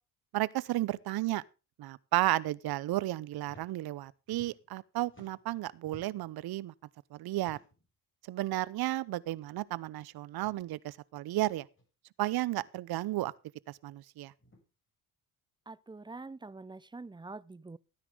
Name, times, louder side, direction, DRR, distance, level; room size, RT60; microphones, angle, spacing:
voice 1, 0.3-1.4 1.8-6.7 7.1-7.6 8.3-11.7 12.2-13.3 13.7-14.3, right 16 dB, 60° right, 0.9 m, -33 dB
sound 1, 3.4-3.7 4.0-4.8 5.1-6.3 7.3-7.9 8.8-9.0 9.3-9.4 10.3-10.6 11.7-11.8 13.0-13.3 14.4-14.6, left 1 dB, 30° left, 6.8 m, -58 dB
voice 2, 15.7-17.8, right 3 dB, 10° right, 0.6 m, -45 dB
14.5 x 9.9 x 3.6 m
hypercardioid pair, 60°, 42 cm